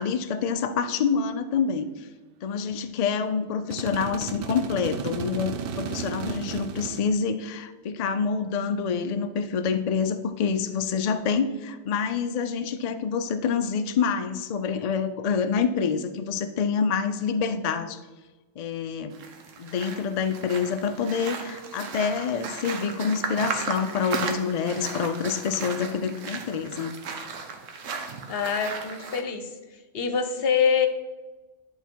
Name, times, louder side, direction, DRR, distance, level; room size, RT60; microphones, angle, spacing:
voice 1, 0.0-2.1 2.4-18.0 18.6-19.2 19.6-27.0, left 6 dB, 80° left, 9 dB, 0.3 m, -27 dB
sound 1, 3.7-7.0, right 6 dB, 60° right, 0.7 m, -33 dB
sound 2, 19.1-29.2, right 5 dB, 90° right, 1.2 m, -35 dB
voice 2, 28.3-30.9, left 6 dB, 55° left, 7 dB, 0.9 m, -25 dB
10.5 x 3.8 x 4.5 m, 1.2 s
omnidirectional pair, 1.3 m